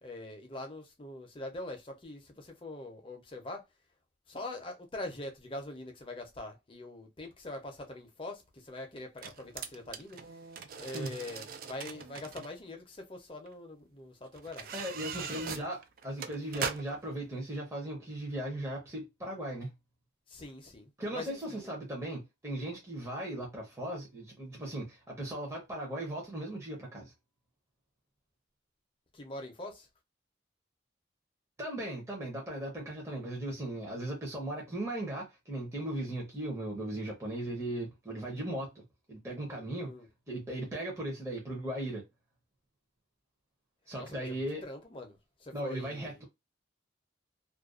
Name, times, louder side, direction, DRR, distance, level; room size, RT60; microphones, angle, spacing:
voice 1, 0.0-3.6 4.3-10.2 10.8-14.7 15.2-15.6 20.3-21.7 29.1-29.9 39.9-40.1 44.0-46.2, left 2 dB, 30° left, 0.6 m, -43 dB
sound 1, 7.5-7.6 9.0-12.5 13.5-13.6 14.3-17.1 17.5-17.6, right 6 dB, 50° right, 0.3 m, -41 dB
voice 2, 14.7-19.7 21.0-27.1 31.6-38.8 39.1-39.9 40.3-42.0 43.9-44.6 45.5-46.2, right 1 dB, 15° right, 0.6 m, -37 dB
2.4 x 2.2 x 2.4 m
head